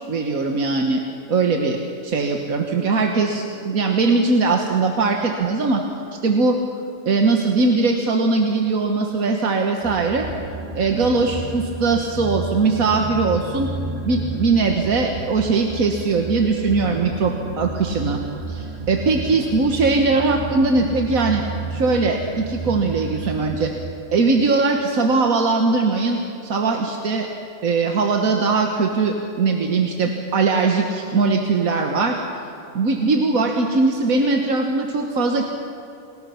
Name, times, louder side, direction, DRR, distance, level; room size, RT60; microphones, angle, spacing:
voice 1, 0.1-1.0 1.3-5.8 6.2-6.6 7.1-10.3 10.7-13.7 14.0-18.2 18.5-21.4 21.7-23.7 24.1-27.3 27.6-32.2 32.8-35.5, right 3 dB, 85° right, 3 dB, 1.8 m, -20 dB
sound 1, 9.8-23.7, right 3 dB, 25° right, 2.7 m, -31 dB
29.0 x 20.0 x 5.8 m, 2.9 s
omnidirectional pair, 1.4 m